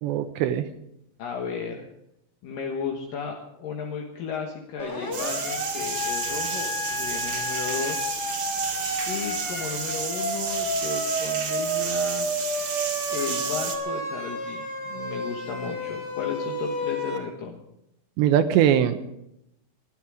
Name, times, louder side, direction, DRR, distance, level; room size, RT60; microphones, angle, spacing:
voice 1, 0.0-0.7 18.2-19.1, right 10 dB, 75° right, 9 dB, 2.8 m, -21 dB
voice 2, 1.2-1.9 2.4-8.1 9.1-12.3 13.1-17.6, left 6 dB, 65° left, 1 dB, 2.4 m, -34 dB
Siren, 4.8-17.2, equal, 25° left, 1.5 m, -31 dB
sound 1, 5.1-13.8, right 5 dB, 45° right, 2.0 m, -31 dB
21.0 x 12.5 x 4.9 m, 0.83 s
omnidirectional pair, 5.7 m